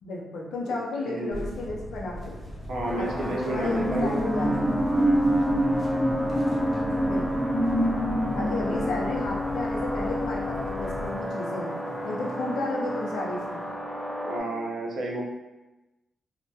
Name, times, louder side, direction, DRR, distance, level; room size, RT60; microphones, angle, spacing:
voice 1, 0.0-2.4 3.0-4.6 7.0-7.5 8.3-11.8 12.0-13.7, left 2 dB, 85° left, -2 dB, 0.5 m, -33 dB
voice 2, 1.1-1.5 2.7-4.1 8.4-8.9 14.2-15.2, right 1 dB, 80° right, -2 dB, 0.5 m, -32 dB
sound 1, 1.3-11.1, equal, 40° left, 0.9 m, -39 dB
sound 2, 2.7-11.7 12.1-12.3, equal, 15° left, 0.3 m, -28 dB
sound 3, 2.8-14.4, equal, ahead, 0.8 m, -31 dB
2.2 x 2.1 x 2.7 m, 1.0 s
cardioid pair, 65°, 0 cm